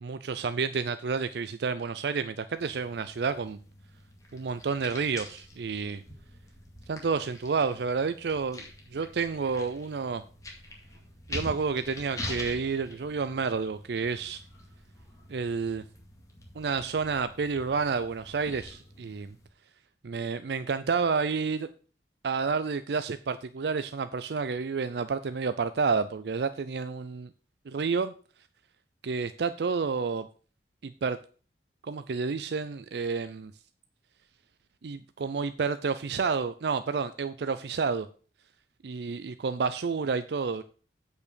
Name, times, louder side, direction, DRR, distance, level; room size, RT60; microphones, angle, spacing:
voice 1, 0.0-3.6 4.3-6.0 6.9-8.6 8.9-10.2 11.3-14.4 15.3-15.8 16.6-19.3 20.0-21.7 22.2-27.3 27.7-28.1 29.0-30.3 30.8-31.2 31.8-33.5 34.8-38.1 38.8-40.6, right 5 dB, 65° right, 12 dB, 0.4 m, -30 dB
sound 1, 2.6-19.5, left 1 dB, 20° left, 2.2 m, -45 dB
8.5 x 5.4 x 6.8 m, 0.40 s
head